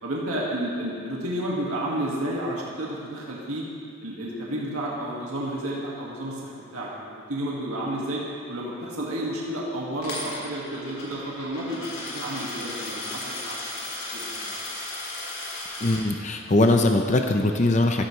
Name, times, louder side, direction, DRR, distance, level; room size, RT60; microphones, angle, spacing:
voice 1, 0.0-3.6 4.0-8.2 8.5-13.6 14.1-14.5, right 1 dB, 85° right, -5 dB, 2.1 m, -31 dB
Coin (dropping), 10.0-16.0, left 2 dB, 85° left, 3.8 m, -35 dB
voice 2, 15.8-18.1, left 2 dB, 35° left, 4 dB, 0.6 m, -21 dB
16.0 x 13.0 x 3.3 m, 2.3 s
head